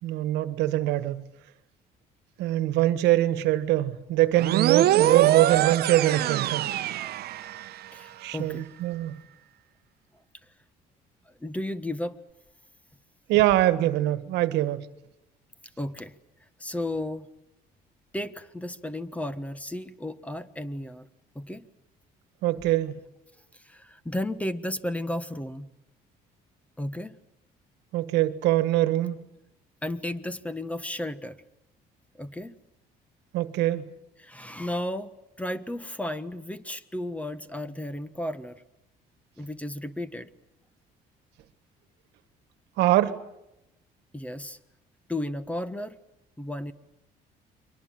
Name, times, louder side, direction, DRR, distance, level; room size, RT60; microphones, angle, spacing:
voice 1, 0.0-1.2 2.4-6.7 8.2-9.2 13.3-14.9 22.4-23.0 27.9-29.2 33.3-33.9 42.8-43.2, right 15 dB, 90° right, 1.5 m, -23 dB
sound 1, 4.4-7.9, right 13 dB, 70° right, 1.0 m, -24 dB
voice 2, 7.9-8.6 11.4-12.2 15.8-16.1 16.6-17.3 18.1-21.1 21.3-21.6 22.6-22.7 23.5-25.7 26.8-27.1 29.8-31.4 32.2-32.6 34.2-35.1 35.4-38.6 39.4-40.3 44.1-44.6 45.1-46.0 46.4-46.7, left 1 dB, 10° left, 1.4 m, -33 dB
30.0 x 23.5 x 7.6 m
cardioid pair, 110°, 17 cm